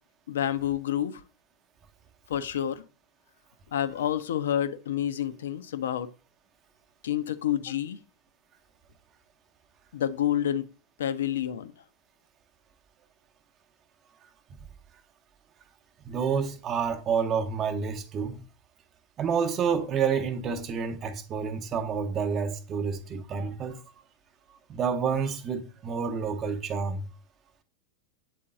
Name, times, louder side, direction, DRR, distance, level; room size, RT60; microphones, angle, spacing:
voice 1, 0.3-1.2 2.3-2.8 3.7-6.1 7.0-8.0 9.9-10.7 11.0-11.7, left 10 dB, 60° left, 0.4 m, -28 dB
voice 2, 16.0-18.4 19.2-23.8 24.7-27.1, right 6 dB, 30° right, 0.7 m, -29 dB
7.7 x 3.7 x 3.7 m
figure-of-eight pair, 90°, 0 cm